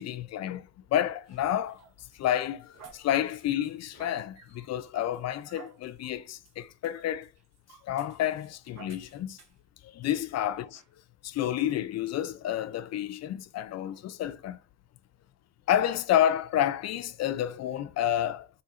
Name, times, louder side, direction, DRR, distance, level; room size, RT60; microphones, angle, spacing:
voice 1, 0.0-7.3 7.8-9.4 9.8-10.8 11.2-14.6 15.7-18.6, left 11 dB, 60° left, 0.4 m, -30 dB
sound 1, 0.9-9.7 10.1-10.2 10.7-10.9, right 6 dB, 60° right, 1.0 m, -55 dB
4.0 x 2.8 x 2.4 m
cardioid pair, 90°, 30 cm